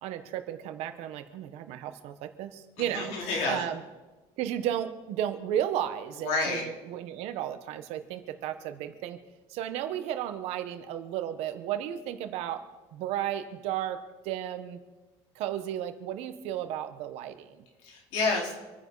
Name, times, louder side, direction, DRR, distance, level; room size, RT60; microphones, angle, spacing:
voice 1, 0.0-3.1 3.5-3.8 4.4-9.2 9.5-12.6 12.9-14.8 15.3-17.6, right 11 dB, 65° right, 8 dB, 1.4 m, -34 dB
voice 2, 2.8-3.6 6.2-6.6 17.8-18.5, left 3 dB, 75° left, -2 dB, 4.6 m, -29 dB
26.5 x 10.0 x 4.2 m, 1.2 s
cardioid pair, 160°, 11 cm